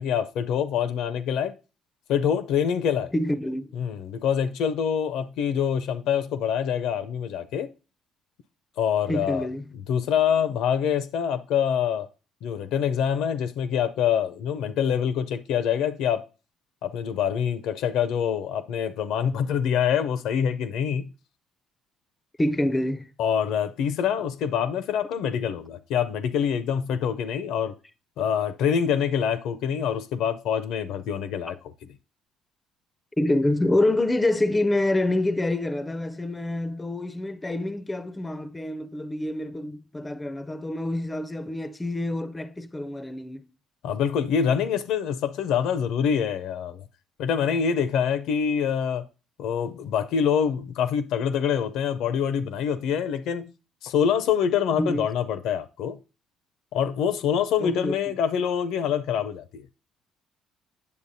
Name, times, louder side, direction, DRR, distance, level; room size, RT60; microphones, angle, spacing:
voice 1, 0.0-1.5 2.1-3.1 3.7-7.7 8.8-9.5 9.7-12.1 12.4-16.2 16.8-21.1 23.2-27.7 28.2-31.6 43.8-46.8 47.2-49.0 49.4-53.5 53.8-56.0 56.7-59.7, left 8 dB, 75° left, 0.5 m, -25 dB
voice 2, 3.1-3.7 9.1-9.6 22.4-23.1 33.2-43.4 54.7-55.1 57.6-58.0, left 1 dB, 15° left, 0.4 m, -26 dB
8.4 x 6.8 x 2.6 m
supercardioid pair, 85°, 0 cm